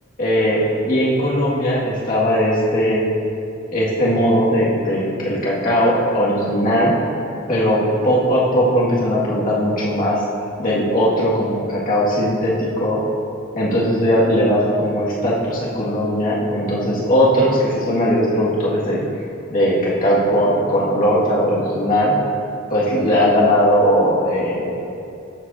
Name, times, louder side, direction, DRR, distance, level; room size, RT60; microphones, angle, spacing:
voice 1, 0.2-3.1 3.7-6.9 7.5-10.2 10.6-13.0 13.5-19.0 19.5-22.1 22.7-24.8, equal, 45° left, -6 dB, 1.9 m, -18 dB
12.5 x 7.5 x 2.7 m, 2.6 s
head